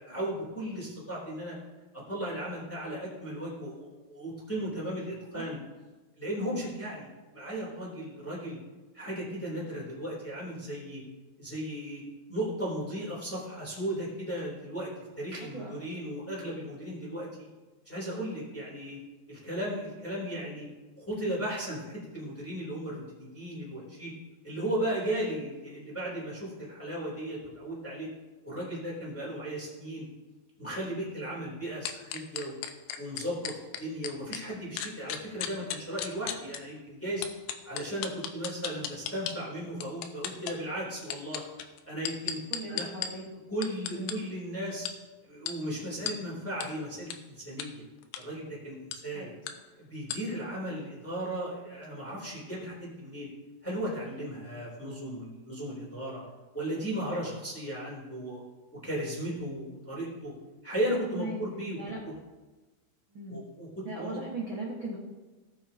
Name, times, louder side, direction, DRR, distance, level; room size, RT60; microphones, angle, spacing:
voice 1, 0.0-1.5 1.9-5.6 6.2-7.1 7.3-8.6 8.9-11.0 11.4-12.0 12.3-17.5 17.8-19.0 19.3-20.7 21.0-24.1 24.4-28.1 28.4-30.0 30.6-32.5 33.0-33.5 33.8-37.2 37.6-41.4 41.9-42.4 42.7-42.9 43.5-44.9 45.2-47.8 48.2-49.3 49.8-53.3 53.6-56.2 56.5-58.4 58.7-60.3 60.6-61.8 62.0-62.1 63.3-64.2, right 1 dB, 5° left, -6 dB, 2.2 m, -36 dB
sound 1, 31.9-34.4 34.8-36.6 37.2-39.3 39.8-40.5 41.0-43.1 43.6-44.1 44.9-45.0 45.5-45.6 46.1-46.2 46.6-46.7 47.1-47.2 47.6-47.7 48.0-48.2 48.9-49.0 49.5-49.6 50.1-50.2, left 10 dB, 85° left, 2.7 m, -34 dB
voice 2, 42.5-43.2 43.9-44.2 49.1-49.3 61.1-61.4 61.8-62.0 63.1-63.4 63.8-65.0, right 2 dB, 80° right, -4 dB, 1.1 m, -38 dB
17.5 x 7.0 x 2.8 m, 1.2 s
omnidirectional pair, 4.7 m